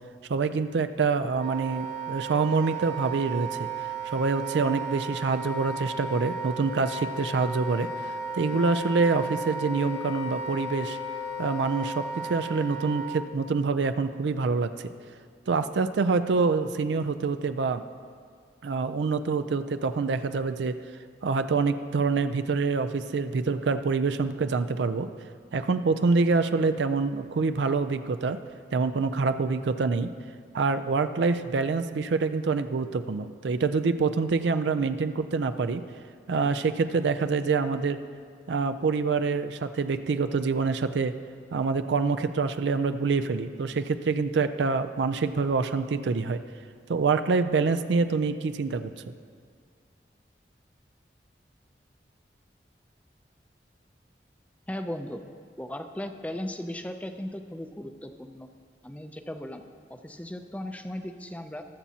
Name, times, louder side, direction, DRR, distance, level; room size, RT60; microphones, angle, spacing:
voice 1, 0.3-3.7 4.1-11.0 11.4-14.9 15.5-17.8 18.6-20.8 21.2-25.1 25.5-28.4 28.7-30.1 30.5-35.8 36.3-38.0 38.5-41.1 41.5-46.4 46.9-48.9, right 4 dB, 85° right, 10 dB, 0.4 m, -26 dB
Wind instrument woodwind instrument, 1.3-13.3, right 3 dB, 80° left, 0.7 m, -35 dB
voice 2, 54.7-55.2 55.6-58.5 58.8-59.6 59.9-61.7, left 1 dB, 10° left, 7 dB, 0.4 m, -37 dB
20.5 x 7.3 x 2.8 m, 2.1 s
head